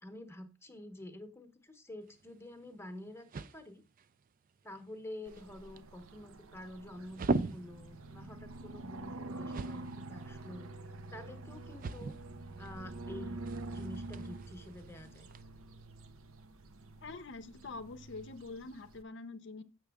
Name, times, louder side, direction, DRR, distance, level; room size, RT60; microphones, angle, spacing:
voice 1, 0.0-3.3 3.5-3.8 4.6-10.7 11.1-12.1 12.6-13.4 13.7-15.3, left 1 dB, 10° left, 0.9 m, -48 dB
sound 1, 2.0-15.4, right 3 dB, 40° right, 0.4 m, -43 dB
sound 2, 5.3-19.0, right 2 dB, 75° right, 0.7 m, -46 dB
voice 2, 17.0-19.6, left 3 dB, 55° left, 0.6 m, -45 dB
7.9 x 6.0 x 3.5 m
head